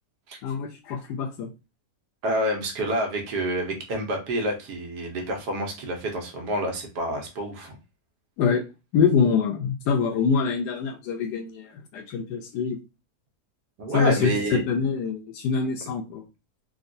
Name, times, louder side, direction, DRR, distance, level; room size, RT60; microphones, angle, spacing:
voice 1, 0.4-1.5 8.4-8.6 8.9-12.8 13.9-16.2, left 6 dB, 85° left, 1.2 m, -25 dB
voice 2, 2.2-7.8 13.8-14.6, right 1 dB, 80° right, 1.4 m, -28 dB
3.7 x 2.3 x 2.5 m
omnidirectional pair, 1.7 m